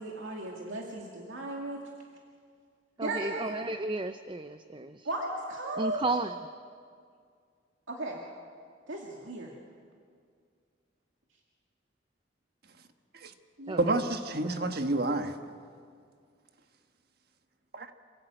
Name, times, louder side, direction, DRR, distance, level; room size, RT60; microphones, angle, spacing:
voice 1, 0.0-1.8 3.0-3.5 5.0-6.0 7.9-8.2 8.9-9.5 13.6-13.9, right 2 dB, 85° right, 0 dB, 2.3 m, -36 dB
voice 2, 3.0-5.1 5.8-6.3 13.7-14.0 14.6-14.7, right 2 dB, 25° right, 10 dB, 0.5 m, -33 dB
voice 3, 13.8-15.4 17.7-17.9, right 2 dB, 55° right, 7 dB, 1.4 m, -29 dB
28.0 x 16.5 x 9.0 m, 2.2 s
head